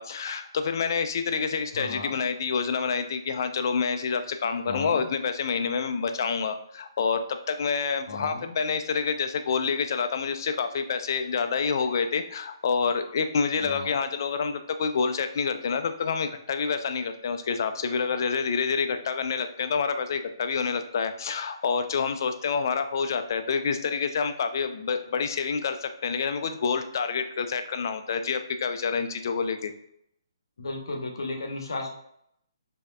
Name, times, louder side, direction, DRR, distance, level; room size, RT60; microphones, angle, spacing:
voice 1, 0.0-29.7, left 5 dB, 50° left, 8 dB, 0.4 m, -28 dB
voice 2, 1.7-2.2 4.7-5.1 8.1-8.5 13.6-13.9 30.6-31.9, left 2 dB, 70° left, 2 dB, 0.8 m, -34 dB
5.0 x 2.8 x 2.3 m, 0.74 s
figure-of-eight pair, 140°, 2 cm